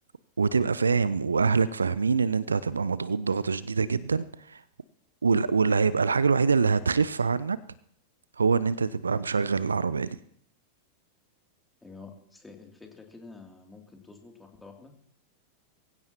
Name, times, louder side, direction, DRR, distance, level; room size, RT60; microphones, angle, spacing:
voice 1, 0.4-4.6 5.2-7.6 8.4-10.2, right 5 dB, 75° right, 19 dB, 0.5 m, -25 dB
voice 2, 11.8-14.9, left 4 dB, 10° left, 2 dB, 2.8 m, -48 dB
22.5 x 16.0 x 2.9 m, 0.66 s
figure-of-eight pair, 90°, 0 cm